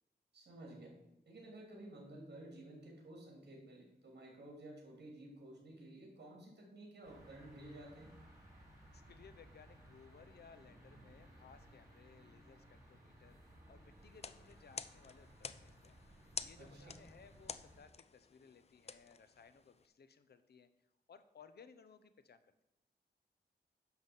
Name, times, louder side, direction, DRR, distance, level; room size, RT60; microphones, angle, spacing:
voice 1, 0.3-0.9 1.2-8.1 16.5-16.9, right 1 dB, 75° right, -1 dB, 3.2 m, -53 dB
sound 1, 7.0-17.8, right 1 dB, 15° right, 2.8 m, -60 dB
voice 2, 8.9-20.7 21.1-22.6, left 6 dB, 70° left, 11 dB, 0.7 m, -61 dB
sound 2, 14.1-19.9, left 5 dB, 40° left, 0.4 m, -50 dB
10.5 x 4.1 x 7.2 m, 0.90 s
wide cardioid pair, 150°, 17 cm